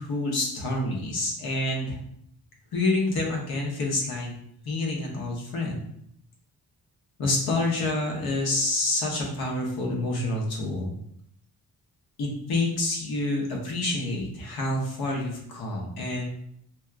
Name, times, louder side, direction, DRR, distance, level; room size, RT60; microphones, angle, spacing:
voice 1, 0.0-2.0 2.7-4.4 4.6-5.8 7.2-10.9 12.2-16.3, left 2 dB, 75° left, -1 dB, 1.0 m, -28 dB
4.4 x 2.3 x 2.4 m, 0.72 s
wide cardioid pair, 145°, 37 cm